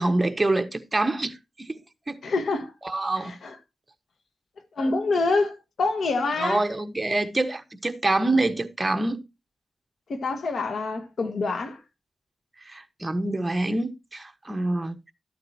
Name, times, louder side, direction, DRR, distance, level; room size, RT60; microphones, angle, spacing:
voice 1, 0.0-1.7 2.1-2.2 2.8-3.4 6.4-9.2 12.7-14.9, right 2 dB, 25° right, 1.3 m, -26 dB
voice 2, 2.2-2.7 3.2-3.6 4.8-6.6 10.1-11.8, left 3 dB, 70° left, 1.6 m, -26 dB
13.0 x 8.8 x 2.9 m
cardioid pair, 65°, 0 cm